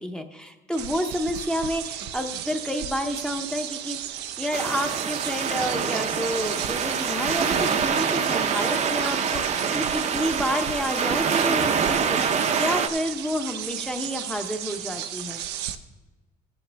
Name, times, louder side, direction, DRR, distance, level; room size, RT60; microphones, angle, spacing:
voice 1, 0.0-4.0 4.4-15.4, equal, 5° left, 4 dB, 0.8 m, -29 dB
sound 1, 0.7-15.7, right 10 dB, 90° right, 0.6 m, -35 dB
sound 2, 4.5-12.9, right 6 dB, 40° right, 0.7 m, -25 dB
15.0 x 7.3 x 3.4 m, 1.1 s
cardioid pair, 110°, 17 cm